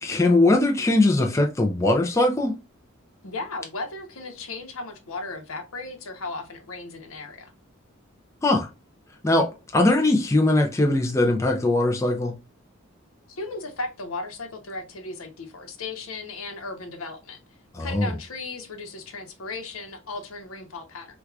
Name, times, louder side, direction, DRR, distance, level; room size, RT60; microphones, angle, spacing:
voice 1, 0.0-2.5 8.4-8.7 9.2-12.3 17.7-18.1, left 2 dB, 15° left, 0.3 m, -21 dB
voice 2, 3.2-7.5 13.3-17.4 17.8-21.2, left 3 dB, 75° left, 0.8 m, -36 dB
4.5 x 2.3 x 2.3 m
head